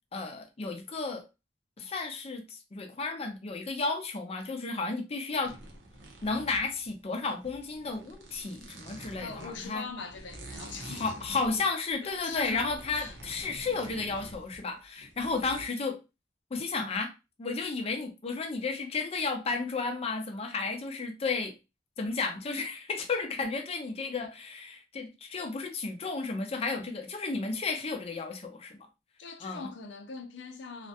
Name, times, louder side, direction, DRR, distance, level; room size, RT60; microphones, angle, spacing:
voice 1, 0.1-1.3 1.8-5.6 6.2-9.8 10.8-16.0 16.5-17.1 17.4-21.5 22.0-28.8 29.4-29.7, left 4 dB, 35° left, 0.5 m, -33 dB
sound 1, 5.4-15.7, right 1 dB, 70° right, 0.6 m, -47 dB
voice 2, 9.2-11.1 12.0-13.2 29.2-30.9, left 4 dB, 80° left, 0.5 m, -42 dB
2.4 x 2.1 x 2.7 m
head